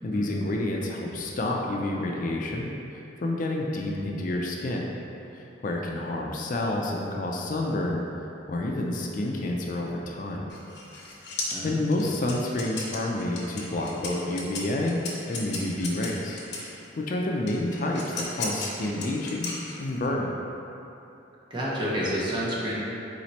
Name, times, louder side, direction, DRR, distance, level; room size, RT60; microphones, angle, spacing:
voice 1, 0.0-5.0 5.4-8.0 8.5-10.5 11.6-15.0 15.3-16.4 17.0-19.5 19.8-20.3, left 1 dB, 45° left, -1 dB, 0.4 m, -29 dB
sound 1, 10.5-16.7 17.5-20.1, left 3 dB, 75° left, 0.8 m, -36 dB
voice 2, 11.5-12.1 21.5-22.7, equal, 25° right, -8 dB, 0.9 m, -30 dB
4.1 x 3.1 x 4.0 m, 2.9 s
head